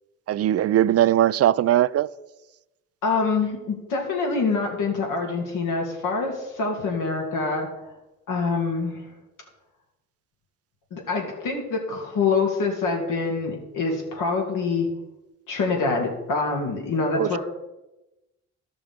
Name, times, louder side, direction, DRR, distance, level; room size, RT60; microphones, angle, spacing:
voice 1, 0.3-2.1 17.1-17.4, right 12 dB, 50° right, 0.4 m, -20 dB
voice 2, 3.0-7.7 8.3-9.0 10.9-14.9 15.5-17.4, left 4 dB, 85° left, 2.7 m, -25 dB
13.0 x 6.1 x 5.1 m
cardioid pair, 85°, 31 cm